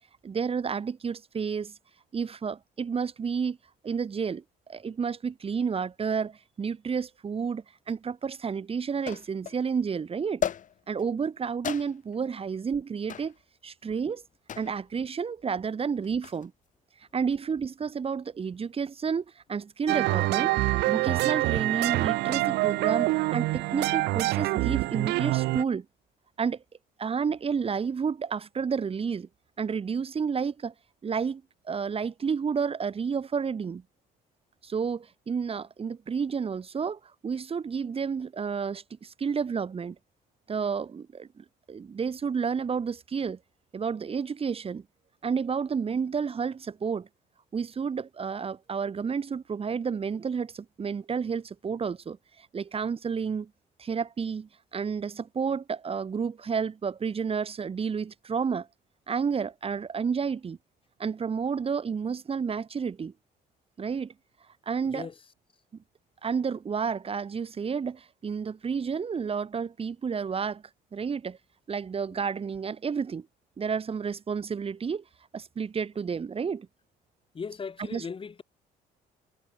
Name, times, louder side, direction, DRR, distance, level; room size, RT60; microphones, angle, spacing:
voice 1, 0.2-1.7 2.1-3.6 3.8-4.4 4.7-10.5 10.9-13.3 13.6-14.2 14.6-16.5 17.1-20.5 20.9-25.9 26.4-26.6 27.0-29.3 29.6-30.7 31.0-33.8 34.6-40.0 40.5-43.4 43.7-44.8 45.2-47.1 47.5-53.5 53.8-58.7 59.1-60.6 61.0-63.1 63.8-64.1 64.7-65.1 66.2-70.6 70.9-71.4 71.7-73.3 73.6-75.0 75.3-76.7 77.8-78.0, right 6 dB, 35° right, 5.9 m, -31 dB
sound 1, 7.9-8.0 9.1-9.6 10.4-11.0 11.6-12.2 13.1-13.4 14.5-14.8 16.0-16.5, left 9 dB, 50° left, 3.6 m, -34 dB
sound 2, 19.9-25.6, right 20 dB, 80° right, 0.6 m, -26 dB
voice 2, 77.3-78.4, left 5 dB, 30° left, 4.4 m, -37 dB
cardioid pair, 110°, 17 cm